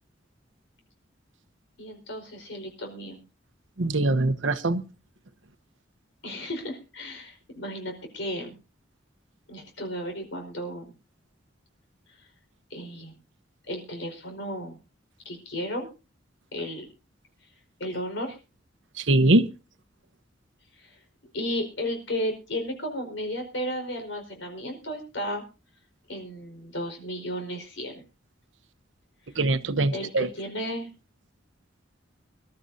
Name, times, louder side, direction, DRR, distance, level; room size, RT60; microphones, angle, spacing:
voice 1, 1.8-3.2 6.2-8.6 9.5-10.9 12.7-13.1 13.7-14.8 15.2-15.9 16.5-16.8 17.8-18.4 20.8-20.9 21.3-25.4 26.1-28.0 29.9-30.9, equal, 80° left, 4 dB, 4.9 m, -34 dB
voice 2, 3.8-4.8 19.0-19.4 29.4-30.3, right 2 dB, 85° right, 11 dB, 1.0 m, -22 dB
25.0 x 12.5 x 2.7 m, 0.31 s
head